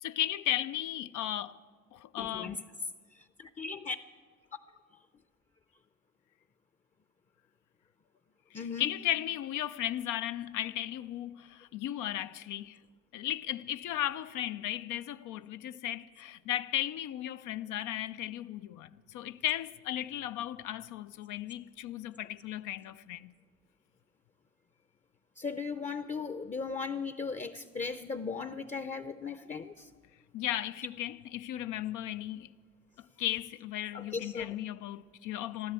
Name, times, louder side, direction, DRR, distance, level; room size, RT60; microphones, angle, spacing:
voice 1, 0.0-1.5 1.9-2.6 8.5-12.8 13.1-23.3 30.3-32.5 33.2-35.7, left 12 dB, 85° left, 0.5 m, -35 dB
voice 2, 2.2-2.6 3.4-4.0 8.5-8.9 25.4-29.9 33.9-34.5, left 5 dB, 25° left, 0.6 m, -37 dB
14.0 x 12.0 x 8.2 m
cardioid pair, 90°, 30 cm